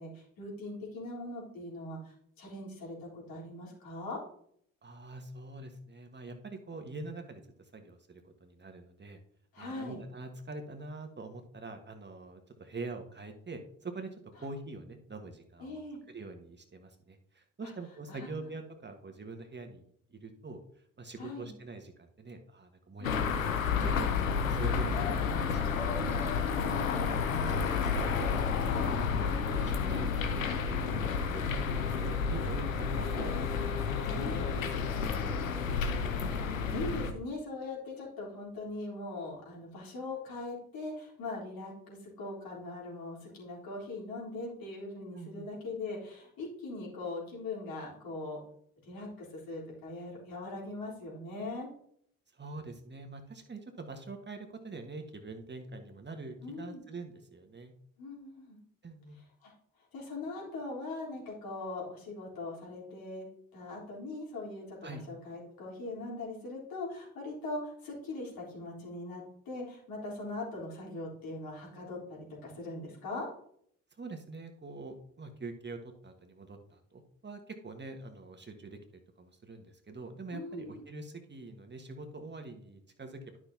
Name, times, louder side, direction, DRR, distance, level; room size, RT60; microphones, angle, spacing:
voice 1, 0.0-4.2 9.5-10.0 15.6-16.0 17.6-17.7 18.1-18.3 21.2-21.5 23.0-23.3 26.6-27.0 34.1-34.7 36.3-48.4 48.8-51.7 56.4-56.8 58.0-58.6 59.2-59.5 59.9-63.3 63.5-73.3 80.3-80.8, left 2 dB, 65° left, -4 dB, 3.8 m, -41 dB
voice 2, 4.8-7.4 7.7-9.2 9.6-15.8 16.1-19.8 20.1-20.6 21.0-24.1 24.4-25.2 25.4-26.2 27.1-33.5 34.1-35.5 45.1-45.5 52.3-57.7 58.8-59.2 64.8-65.0 74.0-78.8 79.2-83.2, right 3 dB, 25° right, 5 dB, 1.4 m, -45 dB
sound 1, 23.0-37.1, left 5 dB, 90° left, 0.7 m, -31 dB
12.0 x 6.1 x 2.8 m, 0.67 s
figure-of-eight pair, 45°, 39 cm